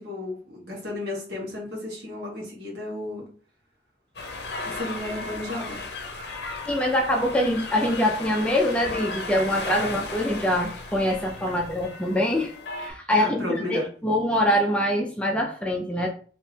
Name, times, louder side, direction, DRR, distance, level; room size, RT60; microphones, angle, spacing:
voice 1, 0.0-3.3 4.7-5.8 11.5-11.6 13.1-13.9, left 2 dB, 60° right, -4 dB, 1.5 m, -33 dB
sound 1, 4.2-12.9, left 3 dB, 60° left, 0.6 m, -35 dB
voice 2, 6.7-13.4 13.7-16.1, left 1 dB, 5° left, -1 dB, 0.4 m, -24 dB
3.6 x 2.9 x 2.8 m, 0.42 s
head